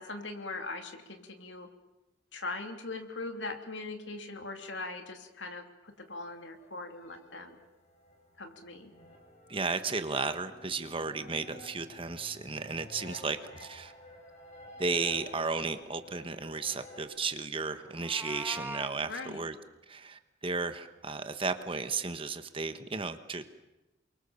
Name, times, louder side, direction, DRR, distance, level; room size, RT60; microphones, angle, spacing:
voice 1, 0.0-1.7 2.3-7.6 8.4-8.9 19.1-19.4, left 3 dB, 75° left, 5 dB, 3.0 m, -40 dB
sound 1, 6.0-17.0, left 1 dB, 35° left, 5.8 m, -52 dB
voice 2, 9.5-13.9 14.8-19.6 19.9-23.4, right 4 dB, 30° right, 9 dB, 1.3 m, -34 dB
Meow, 17.9-18.9, right 2 dB, 10° right, 0.8 m, -41 dB
29.0 x 23.5 x 7.1 m, 1.0 s
head